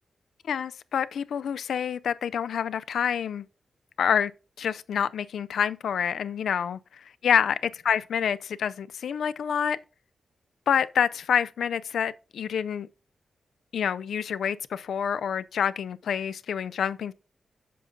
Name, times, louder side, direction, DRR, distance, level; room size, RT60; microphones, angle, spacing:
voice 1, 0.5-3.5 4.0-4.3 4.6-6.8 7.2-9.8 10.7-12.9 13.7-17.1, left 8 dB, 85° left, 0.3 m, -27 dB
7.7 x 5.0 x 3.8 m
cardioid pair, 75°, 0 cm